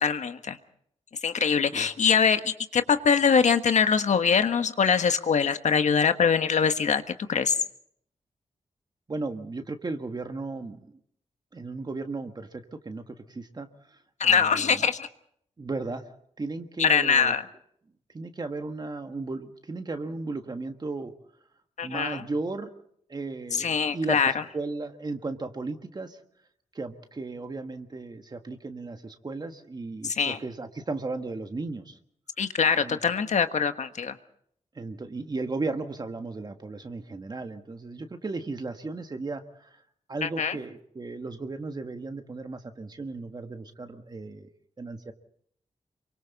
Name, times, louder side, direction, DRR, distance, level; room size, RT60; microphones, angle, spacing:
voice 1, 0.0-0.6 1.2-7.0 7.3-7.6 14.2-15.1 16.8-17.4 21.8-22.2 23.6-24.3 30.0-30.4 32.4-34.2 40.2-40.6, left 6 dB, 75° left, 9 dB, 1.4 m, -23 dB
voice 2, 9.1-11.0 11.5-14.8 15.6-16.0 16.4-17.3 18.1-21.1 21.8-22.7 23.1-26.2 26.7-32.0 32.8-33.0 34.7-39.8 40.1-44.5 44.8-45.1, right 3 dB, 35° right, 6 dB, 1.5 m, -35 dB
28.0 x 24.0 x 4.1 m, 0.66 s
wide cardioid pair, 110°, 12 cm